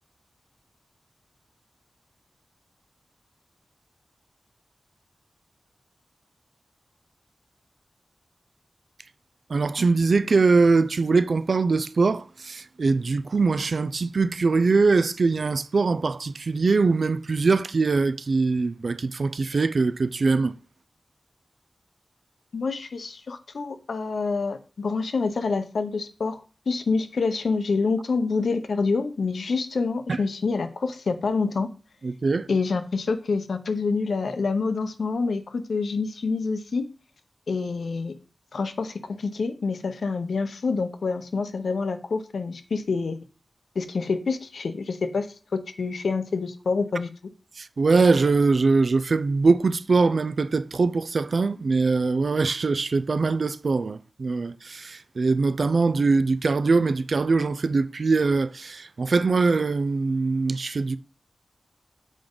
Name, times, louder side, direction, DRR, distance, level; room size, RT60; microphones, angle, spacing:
voice 1, 9.5-20.6 30.1-30.2 32.0-32.5 47.6-61.0, right 4 dB, 65° right, 0.4 m, -22 dB
voice 2, 22.5-31.7 32.5-36.9 37.5-38.2 38.5-43.2 43.7-45.3 45.8-47.1, left 4 dB, 85° left, 0.8 m, -27 dB
7.5 x 5.1 x 3.9 m
wide cardioid pair, 90°, 0 cm